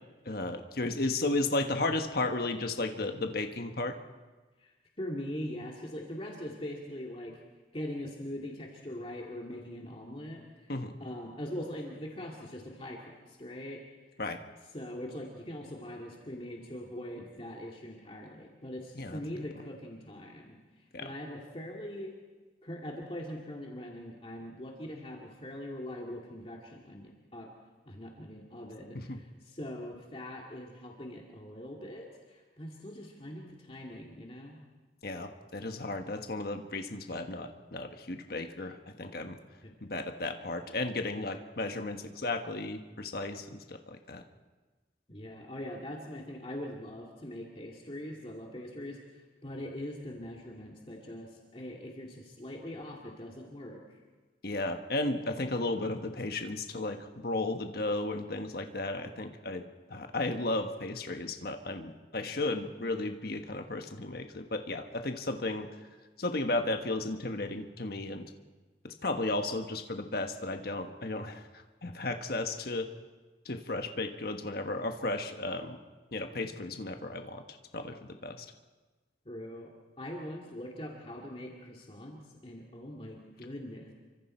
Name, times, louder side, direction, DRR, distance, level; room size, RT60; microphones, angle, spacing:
voice 1, 0.2-3.9 10.7-11.0 14.2-14.4 19.0-19.2 20.9-21.1 28.9-29.2 35.0-39.4 39.8-44.2 54.4-65.7 66.2-68.3 68.8-72.9 73.4-75.8 76.1-77.4 77.7-78.5, left 2 dB, 55° left, 5 dB, 1.4 m, -34 dB
voice 2, 4.6-7.4 7.7-10.7 11.0-13.8 14.7-20.6 21.0-22.1 22.6-27.5 27.9-34.6 39.6-39.7 45.1-53.8 79.3-79.7 80.0-83.9, left 1 dB, 30° left, -1 dB, 2.3 m, -42 dB
28.5 x 24.5 x 4.4 m, 1.3 s
head